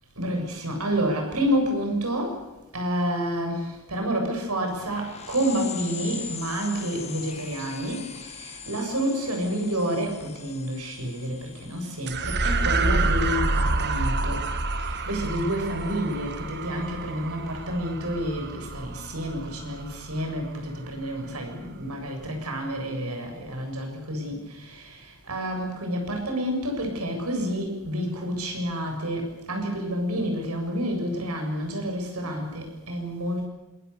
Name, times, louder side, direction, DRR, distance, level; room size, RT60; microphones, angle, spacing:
voice 1, 0.2-2.4 2.7-14.4 14.8-25.0 25.3-33.5, equal, 85° right, 3 dB, 7.3 m, -29 dB
sound 1, 4.7-14.9, left 7 dB, 30° left, 1.8 m, -42 dB
sound 2, 12.1-20.7, right 3 dB, 50° right, 1.6 m, -28 dB
26.0 x 22.5 x 7.0 m, 1.0 s
head